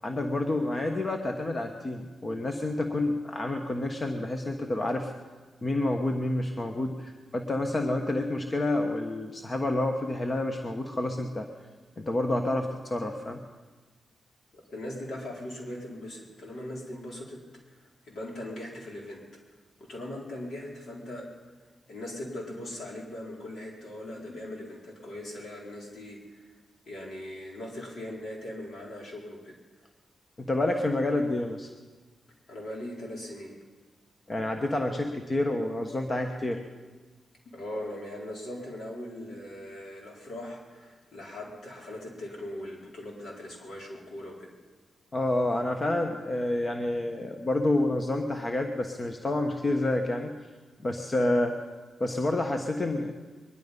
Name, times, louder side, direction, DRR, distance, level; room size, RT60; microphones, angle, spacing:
voice 1, 0.0-5.1 5.6-11.5 12.0-13.4 30.4-31.7 34.3-36.6 45.1-50.3 50.8-51.6 52.0-53.1, left 2 dB, 35° left, 4 dB, 1.3 m, -28 dB
voice 2, 14.5-17.4 17.7-19.2 19.8-21.3 21.9-26.5 26.9-29.6 32.5-33.6 35.8-35.9 37.4-44.5, left 1 dB, 75° left, -2 dB, 4.4 m, -40 dB
22.5 x 11.5 x 5.4 m, 1.3 s
cardioid pair, 70°, 0 cm